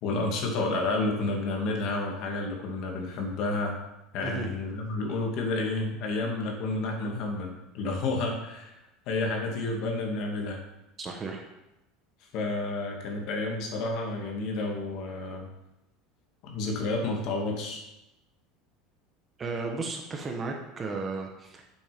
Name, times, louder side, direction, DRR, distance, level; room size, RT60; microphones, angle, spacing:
voice 1, 0.0-3.8 4.1-8.7 9.1-10.6 12.3-15.5 16.4-17.8, left 2 dB, 45° left, 1 dB, 2.1 m, -30 dB
voice 2, 11.0-11.4 19.4-21.7, right 3 dB, 20° right, 3 dB, 1.0 m, -34 dB
8.6 x 7.4 x 5.2 m, 0.93 s
cardioid pair, 170°, 0 cm